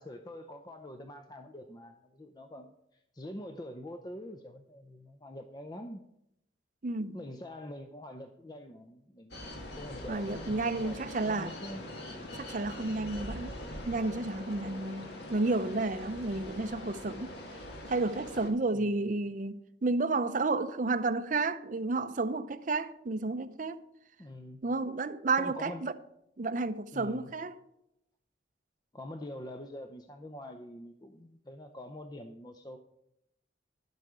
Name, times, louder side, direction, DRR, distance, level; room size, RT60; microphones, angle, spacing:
voice 1, 0.0-6.0 7.1-11.8 18.7-19.1 24.2-24.6 25.3-25.8 26.9-27.3 28.9-32.8, left 1 dB, 20° left, 0.6 m, -45 dB
voice 2, 6.8-7.2 10.1-11.5 12.3-13.6 13.8-17.3 17.9-23.8 24.6-25.9 26.4-27.5, right 3 dB, 40° right, 0.5 m, -31 dB
sound 1, 9.3-18.5, left 1 dB, 60° left, 2.0 m, -43 dB
11.5 x 8.1 x 4.9 m
head